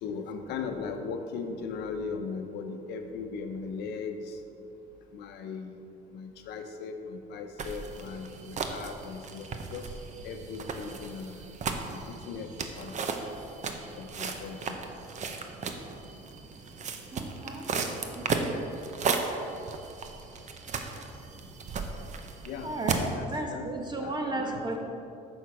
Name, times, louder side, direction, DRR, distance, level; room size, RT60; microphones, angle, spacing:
voice 1, 0.0-4.4 5.1-5.8 6.1-9.9 10.2-11.5 11.9-12.9 14.0-14.8 22.4-23.6 24.0-24.8, left 5 dB, 80° left, 6 dB, 0.8 m, -38 dB
sound 1, 7.6-23.1, right 4 dB, 45° right, 0.8 m, -35 dB
voice 2, 17.1-17.7 18.1-18.5 22.6-23.0 23.3-24.8, right 2 dB, 25° right, 1 dB, 1.3 m, -34 dB
8.4 x 6.3 x 4.8 m, 2.7 s
cardioid pair, 110°, 17 cm